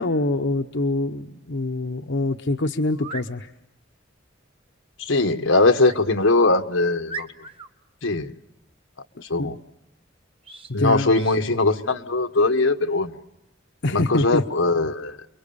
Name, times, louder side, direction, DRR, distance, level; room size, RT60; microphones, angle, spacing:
voice 1, 0.0-3.5 9.4-9.5 10.7-11.1 13.8-14.4, left 2 dB, 65° left, 1.0 m, -25 dB
sound 1, 2.9-3.3 5.8-6.0 6.6-6.7 7.1-7.7 10.4-10.7 11.1-11.4, right 4 dB, 30° right, 1.4 m, -38 dB
voice 2, 5.0-7.3 8.0-8.3 9.3-9.6 10.7-13.1 13.9-15.2, left 2 dB, 85° left, 1.4 m, -20 dB
30.0 x 22.5 x 7.0 m
head